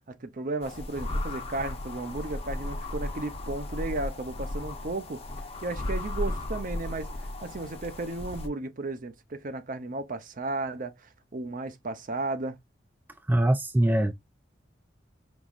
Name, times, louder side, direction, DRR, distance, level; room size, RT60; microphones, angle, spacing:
voice 1, 0.1-5.2 5.6-12.6, right 2 dB, 45° right, 0.7 m, -34 dB
sound 1, 0.6-8.5, left 1 dB, 35° left, 0.7 m, -35 dB
voice 2, 13.3-14.1, right 1 dB, 10° right, 0.3 m, -22 dB
5.3 x 3.1 x 2.4 m
head